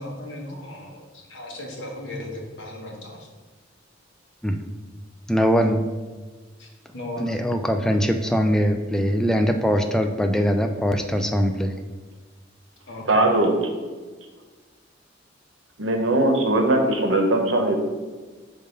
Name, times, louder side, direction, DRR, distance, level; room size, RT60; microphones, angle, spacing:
voice 1, 0.0-3.3 6.6-7.4 12.9-13.1, left 1 dB, 75° left, 0 dB, 1.3 m, -36 dB
voice 2, 5.3-5.9 7.2-11.7, equal, 5° left, 5 dB, 0.3 m, -22 dB
voice 3, 13.1-13.5 15.8-17.7, right 2 dB, 85° right, 3 dB, 0.9 m, -20 dB
5.3 x 3.9 x 5.1 m, 1.4 s
head